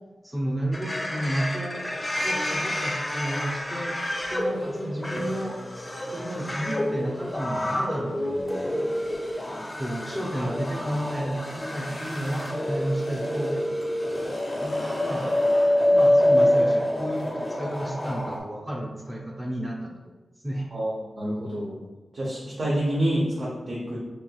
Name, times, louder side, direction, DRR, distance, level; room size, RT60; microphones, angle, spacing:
voice 1, 0.2-1.8 2.2-3.9 4.3-5.6 6.0-8.7 9.8-13.6 14.6-15.3 15.9-19.9 20.4-20.7, right 1 dB, 20° right, -1 dB, 0.6 m, -32 dB
sound 1, 0.7-18.4, left 1 dB, 25° left, 0.6 m, -27 dB
sound 2, 11.5-13.3 13.6-18.4, left 1 dB, 75° left, 1.0 m, -42 dB
voice 2, 20.7-21.7 22.1-24.0, right 1 dB, 70° right, -7 dB, 0.8 m, -27 dB
3.1 x 2.9 x 2.4 m, 1.2 s
cardioid pair, 45°, 0 cm